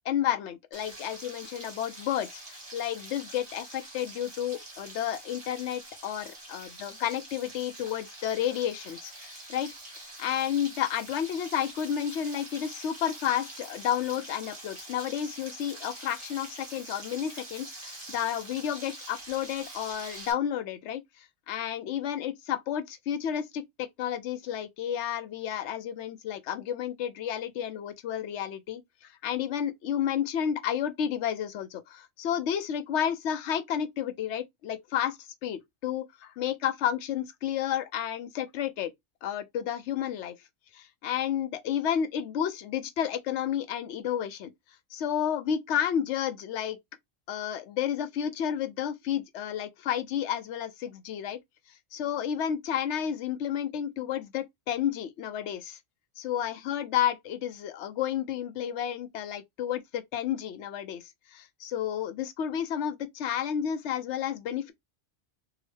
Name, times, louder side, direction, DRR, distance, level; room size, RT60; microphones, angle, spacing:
voice 1, 0.0-38.9 39.2-40.3 40.7-44.5 44.9-46.8 47.3-51.4 51.9-55.8 56.2-64.7, left 9 dB, 75° left, 0.9 m, -31 dB
Frying (food), 0.7-20.3, right 2 dB, 30° right, 1.3 m, -45 dB
3.7 x 2.1 x 3.1 m
omnidirectional pair, 1.2 m